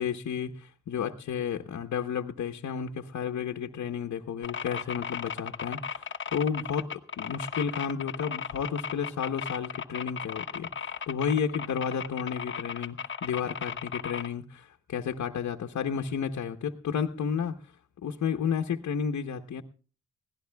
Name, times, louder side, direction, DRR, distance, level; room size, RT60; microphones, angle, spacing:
voice 1, 0.0-17.6 18.0-19.6, left 7 dB, 65° left, 4 dB, 1.0 m, -32 dB
sound 1, 4.4-14.3, left 6 dB, 40° left, 1.0 m, -36 dB
20.5 x 16.5 x 2.3 m, 0.38 s
cardioid pair, 65°, 30 cm